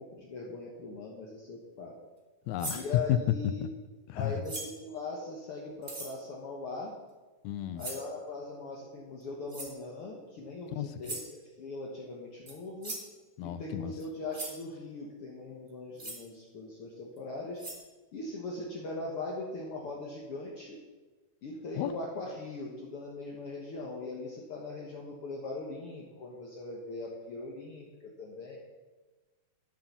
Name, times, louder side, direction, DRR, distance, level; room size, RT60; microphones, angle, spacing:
voice 1, 0.0-2.0 2.7-3.7 4.1-6.9 7.8-13.0 13.4-17.6 18.1-20.8 21.4-28.6, left 2 dB, 55° left, -2 dB, 1.9 m, -40 dB
voice 2, 2.5-2.8 3.1-3.2 3.6-3.7 4.1-4.3 7.4-7.8 10.7-10.9 13.4-13.9 21.8-21.9, left 13 dB, 80° left, 12 dB, 1.8 m, -32 dB
sound 1, 2.6-2.9 4.4-4.9 5.8-6.2 7.8-8.1 9.5-9.8 11.0-11.3 12.5-12.6 12.8-13.1 14.0-14.1 14.3-14.6 16.0-16.2 17.2-17.3 17.6-17.8, right 2 dB, 25° right, 1.1 m, -40 dB
12.5 x 7.5 x 6.1 m, 1.2 s
omnidirectional pair, 3.7 m